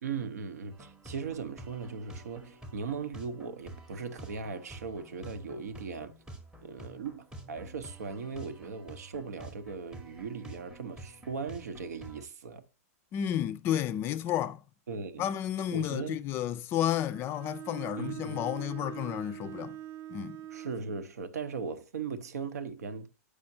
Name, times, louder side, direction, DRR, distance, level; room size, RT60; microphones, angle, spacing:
voice 1, 0.0-6.1 6.6-12.6 14.9-15.3 15.7-16.2 18.0-18.4 20.5-23.1, right 5 dB, 90° right, 0.8 m, -38 dB
sound 1, 0.7-12.3, right 1 dB, 10° right, 0.7 m, -49 dB
voice 2, 13.1-14.6 15.2-19.8 20.1-20.4, left 11 dB, 30° left, 0.4 m, -32 dB
Bowed string instrument, 16.9-20.8, right 12 dB, 45° right, 0.5 m, -43 dB
7.6 x 4.9 x 2.7 m
hypercardioid pair, 140°, 9 cm